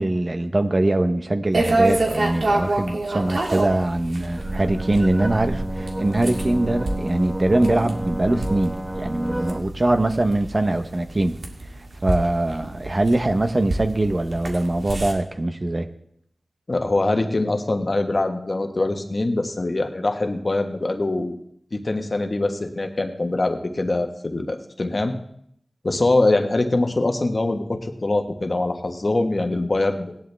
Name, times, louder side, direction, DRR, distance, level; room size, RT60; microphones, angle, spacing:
voice 1, 0.0-11.4 12.0-15.9, right 1 dB, 45° right, 8 dB, 1.1 m, -22 dB
sound 1, 1.5-15.1, right 2 dB, 80° right, 1.9 m, -27 dB
sound 2, 4.4-9.6, right 1 dB, 20° right, 3.2 m, -29 dB
voice 2, 16.7-21.3 21.7-25.1 25.8-30.1, left 2 dB, 55° left, 6 dB, 1.4 m, -23 dB
17.0 x 11.0 x 3.5 m, 0.71 s
cardioid pair, 40°, 0 cm